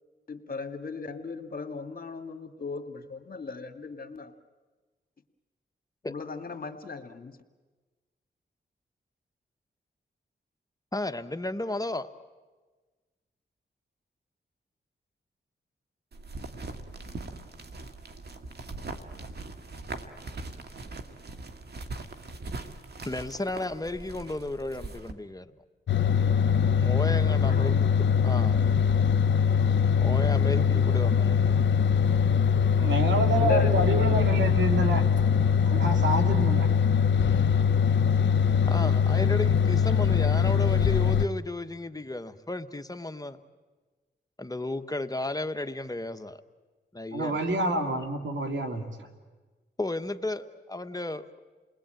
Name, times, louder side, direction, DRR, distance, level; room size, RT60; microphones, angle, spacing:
voice 1, 0.3-4.3 6.0-7.4 27.5-27.8 28.0-28.4 33.3-34.4, left 4 dB, 50° left, 6 dB, 2.0 m, -36 dB
voice 2, 10.9-12.1 23.0-25.5 26.8-28.6 30.0-31.5 38.7-43.4 44.4-46.4 46.9-47.4 49.8-51.4, left 2 dB, 20° left, 8 dB, 1.1 m, -33 dB
sound 1, 16.1-25.1, right 3 dB, 60° right, 1.8 m, -41 dB
sound 2, 25.9-41.3, left 7 dB, 75° left, 0.8 m, -22 dB
voice 3, 32.8-35.1 35.6-36.7 47.1-48.9, right 2 dB, 80° right, 4 dB, 2.8 m, -28 dB
29.0 x 20.5 x 9.1 m, 1.3 s
cardioid pair, 65°, 19 cm